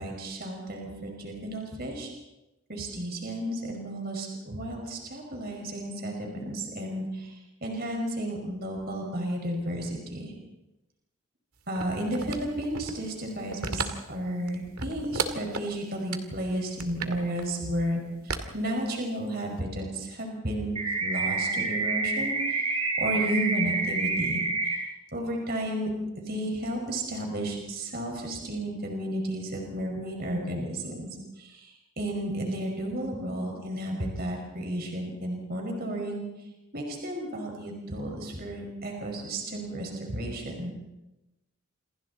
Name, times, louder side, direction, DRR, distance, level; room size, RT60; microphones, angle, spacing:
voice 1, 0.0-2.1 2.7-10.3 11.7-13.8 14.1-24.8 25.1-25.9 26.2-31.1 31.4-36.2 36.7-40.7, right 1 dB, 45° right, 1 dB, 5.3 m, -33 dB
sound 1, 11.7-13.1 13.5-14.2 14.5-15.7 16.1-16.2 16.7-17.4 18.3-19.2 19.6-19.7, right 4 dB, 90° right, 2.3 m, -33 dB
sound 2, 20.8-24.8, right 4 dB, 25° right, 4.2 m, -28 dB
27.5 x 27.5 x 4.2 m, 0.97 s
head